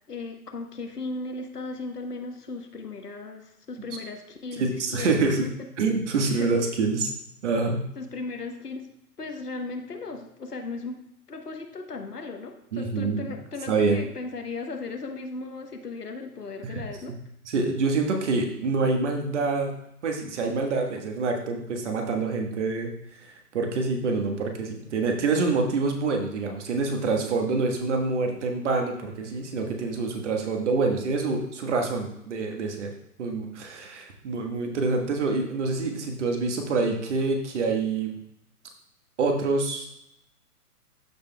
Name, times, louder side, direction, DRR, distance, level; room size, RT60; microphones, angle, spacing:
voice 1, 0.1-5.7 6.4-6.5 7.9-8.9 9.2-11.0 11.3-17.1, left 3 dB, 80° left, 5 dB, 1.3 m, -36 dB
voice 2, 4.6-5.5 5.8-7.1 7.4-7.8 12.7-13.3 13.7-14.0 16.6-16.8 17.5-19.7 20.0-22.9 23.2-32.9 33.2-38.1 39.2-39.9, right 3 dB, 50° right, 3 dB, 1.5 m, -26 dB
13.5 x 5.1 x 2.3 m, 0.77 s
figure-of-eight pair, 125°, 46 cm